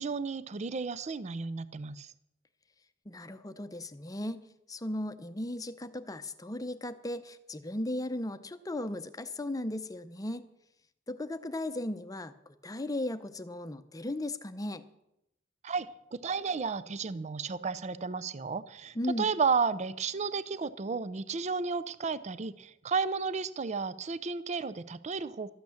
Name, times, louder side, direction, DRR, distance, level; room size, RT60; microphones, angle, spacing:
voice 1, 0.0-2.1 15.6-25.5, right 5 dB, 40° right, 16 dB, 0.5 m, -33 dB
voice 2, 3.1-4.4 4.7-10.5 11.1-14.8 18.9-19.3, left 1 dB, 20° left, 11 dB, 0.7 m, -36 dB
13.0 x 9.0 x 7.1 m, 0.83 s
head